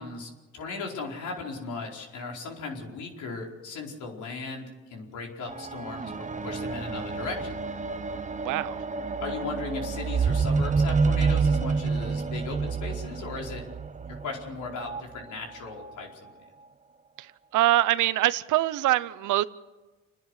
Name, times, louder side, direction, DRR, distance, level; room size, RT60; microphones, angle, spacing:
voice 1, 0.0-7.5 9.2-13.6 14.2-16.2, left 4 dB, 75° left, 4.8 m, -37 dB
sound 1, 5.5-15.0 15.8-15.9, right 4 dB, 25° right, 1.0 m, -28 dB
voice 2, 8.4-8.8 17.2-19.4, right 15 dB, 85° right, 0.8 m, -24 dB
29.0 x 10.5 x 9.8 m
cardioid pair, 90°, 30 cm